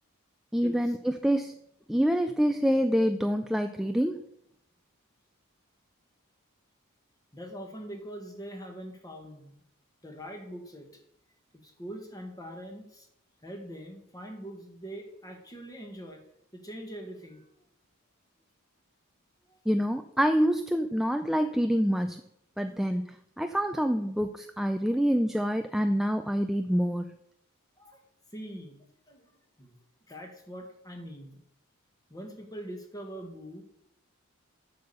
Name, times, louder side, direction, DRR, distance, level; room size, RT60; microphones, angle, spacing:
voice 1, 0.5-1.5 1.9-4.2 19.7-22.2 22.6-27.1, equal, ahead, 7 dB, 0.3 m, -26 dB
voice 2, 7.3-9.6 10.0-10.9 11.6-13.1 13.4-16.2 16.5-17.5 19.5-19.6 27.8-28.0 28.3-29.3 29.6-29.8 30.1-31.4 32.1-33.6, equal, 15° left, 3 dB, 1.6 m, -43 dB
7.7 x 7.1 x 6.8 m, 0.76 s
head